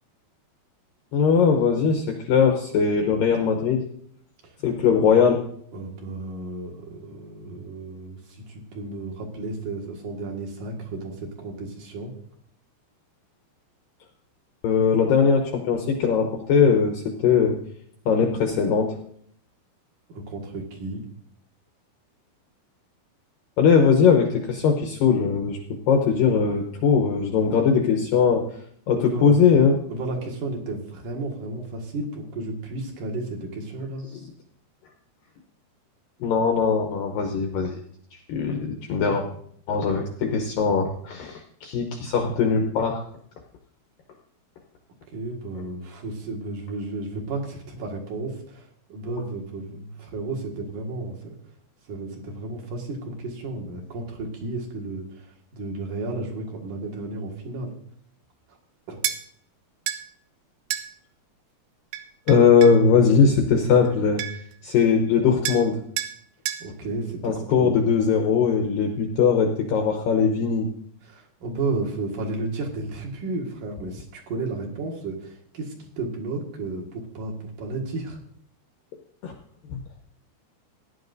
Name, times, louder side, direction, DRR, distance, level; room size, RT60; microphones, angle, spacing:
voice 1, 1.1-3.8 4.6-5.4 14.6-17.5 18.1-19.0 23.6-25.6 25.9-28.5 28.9-29.8 34.1-34.2 36.2-37.8 38.3-39.2 39.7-43.0 62.3-64.2 64.6-65.8 67.2-70.7 79.2-79.3 79.7-79.8, left 6 dB, 75° left, 3 dB, 2.1 m, -20 dB
voice 2, 5.7-12.1 20.1-21.0 29.0-29.4 29.9-34.1 39.0-39.2 45.1-51.3 51.9-57.7 58.9-59.0 66.6-67.8 71.0-78.2, right 2 dB, 55° right, 0 dB, 2.9 m, -33 dB
sound 1, 59.0-59.2 59.9-60.0 60.7-60.9 61.9-62.8 63.9-64.0 64.2-64.5 65.5-65.7 66.0-66.2 66.5-66.7, right 11 dB, 80° right, 2.2 m, -29 dB
17.5 x 11.0 x 2.6 m, 0.64 s
omnidirectional pair, 5.1 m